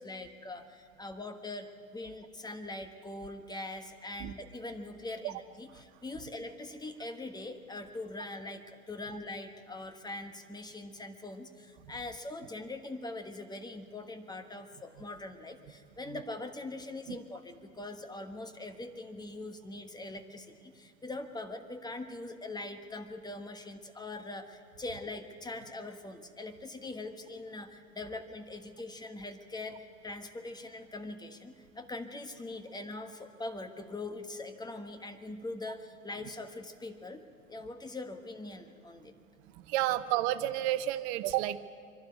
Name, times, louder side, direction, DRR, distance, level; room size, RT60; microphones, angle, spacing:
voice 1, 0.0-37.2 37.5-39.1, left 2 dB, 10° left, 8 dB, 1.4 m, -42 dB
voice 2, 39.7-41.6, right 14 dB, 50° right, 12 dB, 1.0 m, -30 dB
24.0 x 12.0 x 9.5 m, 2.2 s
hypercardioid pair, 95°, 42 cm